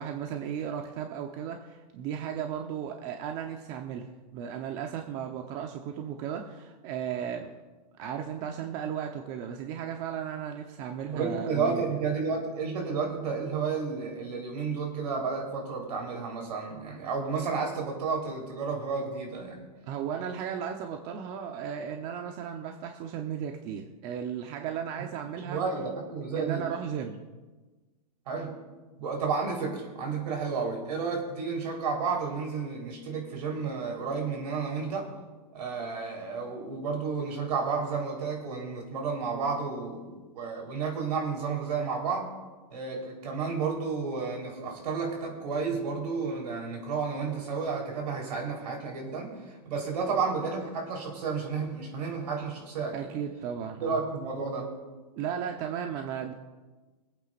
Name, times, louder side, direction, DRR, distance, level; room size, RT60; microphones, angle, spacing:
voice 1, 0.0-7.5 8.0-11.8 19.9-25.6 26.3-27.2 52.9-54.0 55.2-56.3, right 8 dB, 40° right, 3 dB, 1.0 m, -35 dB
voice 2, 11.1-19.7 25.5-26.6 28.3-28.5 29.0-35.1 35.5-42.3 42.7-53.1 53.8-54.7, right 5 dB, 70° right, 1 dB, 4.3 m, -32 dB
25.0 x 8.9 x 2.6 m, 1.3 s
hypercardioid pair, 145°, 21 cm